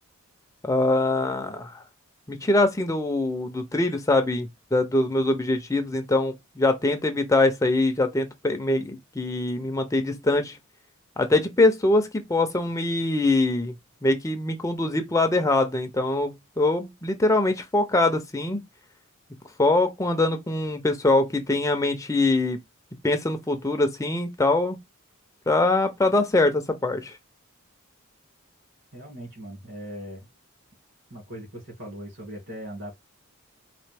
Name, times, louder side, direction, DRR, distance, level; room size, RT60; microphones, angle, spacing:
voice 1, 0.6-1.8 2.3-10.6 11.2-13.7 14.0-18.6 19.6-22.6 23.0-24.8 25.5-27.2, left 2 dB, 15° left, 0.4 m, -23 dB
voice 2, 28.9-30.3 31.1-33.0, equal, 55° right, 2.3 m, -39 dB
4.2 x 2.6 x 3.3 m
head